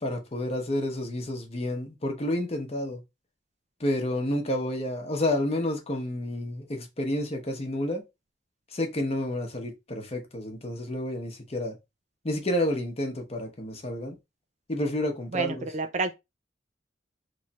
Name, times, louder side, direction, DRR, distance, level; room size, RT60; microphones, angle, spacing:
voice 1, 0.0-3.0 3.8-8.0 8.7-11.8 12.2-14.2 14.7-15.7, left 1 dB, 35° left, 0.9 m, -30 dB
voice 2, 15.3-16.2, right 4 dB, 40° right, 0.4 m, -29 dB
3.1 x 2.3 x 4.0 m
head